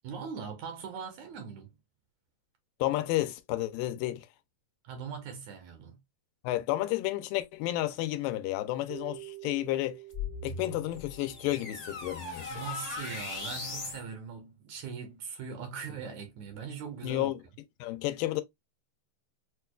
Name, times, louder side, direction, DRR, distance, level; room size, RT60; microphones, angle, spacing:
voice 1, 0.0-1.7 4.8-6.0 12.5-17.4, right 6 dB, 70° right, 2.0 m, -41 dB
voice 2, 2.8-4.3 6.4-10.0 10.4-12.7 17.0-17.4 17.8-18.4, left 15 dB, 85° left, 2.3 m, -31 dB
Keyboard (musical), 8.9-12.1, right 18 dB, 90° right, 1.6 m, -48 dB
sound 1, 10.1-14.0, left 4 dB, 50° left, 0.8 m, -39 dB
6.2 x 2.2 x 2.3 m
omnidirectional pair, 3.9 m